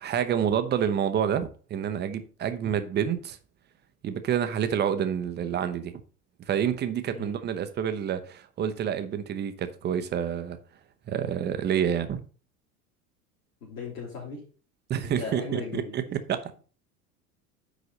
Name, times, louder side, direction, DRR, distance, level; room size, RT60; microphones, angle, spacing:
voice 1, 0.0-3.4 4.0-5.9 6.5-10.6 11.1-12.2 14.9-16.0 16.3-16.5, right 8 dB, 25° right, 0.9 m, -28 dB
voice 2, 13.6-14.4 15.0-16.2, left 4 dB, 60° left, 3.7 m, -37 dB
10.0 x 4.0 x 5.2 m
figure-of-eight pair, 80°, 45 cm